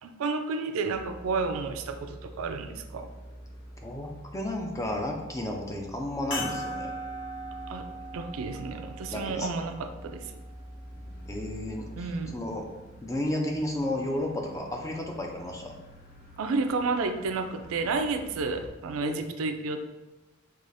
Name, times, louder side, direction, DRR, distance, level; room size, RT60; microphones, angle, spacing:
voice 1, 0.0-3.1 7.7-10.3 12.0-12.4 16.4-19.8, right 4 dB, 80° right, 7 dB, 0.3 m, -31 dB
sound 1, 0.9-18.7, right 1 dB, 45° left, 0.7 m, -47 dB
voice 2, 3.8-6.9 9.1-9.5 11.3-12.6 13.0-15.8 19.0-19.2, left 1 dB, 15° left, 2 dB, 0.4 m, -32 dB
sound 2, 6.3-11.1 11.9-12.0 14.1-14.2, equal, 60° left, 1.1 m, -39 dB
4.8 x 2.3 x 2.5 m, 1.1 s
head